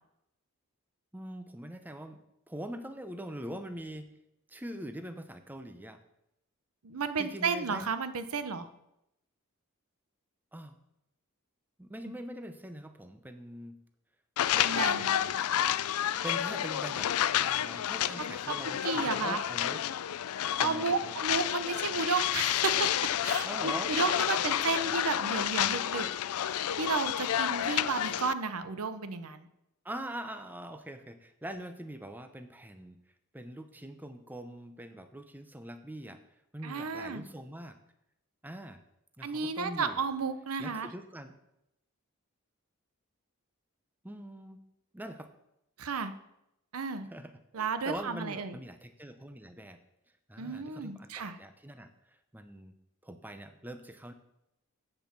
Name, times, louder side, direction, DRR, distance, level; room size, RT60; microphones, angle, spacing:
voice 1, 1.1-2.2 2.5-4.1 4.5-6.0 7.2-7.8 10.5-10.8 11.8-13.8 14.7-15.4 16.2-19.8 20.6-21.1 23.4-23.9 29.8-33.0 33.3-36.2 36.5-37.8 38.4-38.8 39.2-40.0 40.6-41.3 44.0-44.6 44.9-45.3 47.0-49.8 50.3-51.9 52.3-52.7 53.0-54.1, right 1 dB, 10° right, 8 dB, 0.7 m, -43 dB
voice 2, 6.8-8.7 14.5-15.1 18.2-18.3 18.8-19.4 20.6-22.9 23.2-26.1 26.4-29.5 36.6-37.2 39.2-40.9 45.8-46.1 46.7-47.1 47.5-48.5 50.4-51.4, right 4 dB, 85° right, 11 dB, 0.8 m, -33 dB
sound 1, 14.4-28.3, left 11 dB, 90° left, 0.4 m, -30 dB
8.0 x 7.2 x 7.3 m, 0.84 s
head